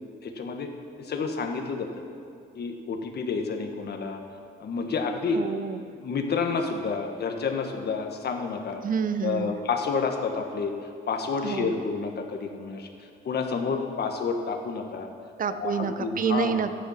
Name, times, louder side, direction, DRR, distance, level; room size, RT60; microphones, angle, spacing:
voice 1, 0.2-0.7 1.0-1.9 2.5-4.2 4.6-5.4 6.0-8.8 9.2-10.7 11.1-12.9 13.2-15.1 15.6-16.6, left 5 dB, 55° left, 4 dB, 1.6 m, -29 dB
voice 2, 5.3-5.8 8.8-9.5 11.4-11.8 15.4-16.7, right 6 dB, 45° right, 11 dB, 0.7 m, -28 dB
13.0 x 10.0 x 5.9 m, 2.4 s
cardioid pair, 90°, 20 cm